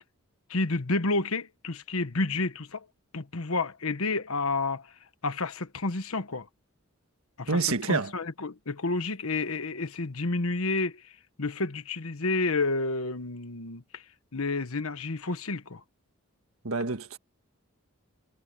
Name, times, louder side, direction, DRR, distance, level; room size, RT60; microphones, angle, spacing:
voice 1, 0.5-2.9 3.1-4.9 5.2-6.5 7.4-7.6 7.9-11.1 11.4-14.0 14.3-15.8, left 3 dB, 75° left, 1.3 m, -30 dB
voice 2, 7.5-8.1 16.6-17.2, right 4 dB, 75° right, 1.6 m, -27 dB
head